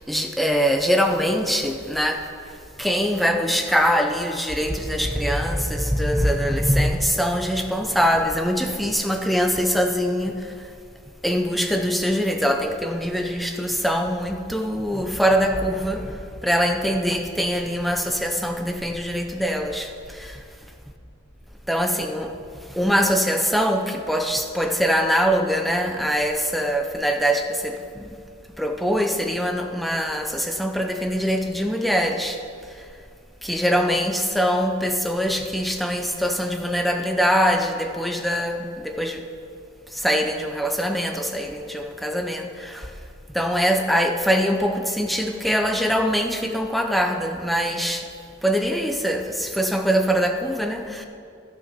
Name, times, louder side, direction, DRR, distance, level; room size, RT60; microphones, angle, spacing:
voice 1, 0.1-2.2 2.8-10.3 11.2-16.2 16.4-19.9 20.2-20.3 21.7-22.3 22.8-28.0 28.6-32.4 33.4-39.2 39.9-42.9 43.3-48.0 48.4-51.1, equal, ahead, 4 dB, 0.6 m, -23 dB
11.5 x 6.5 x 6.0 m, 2.3 s
head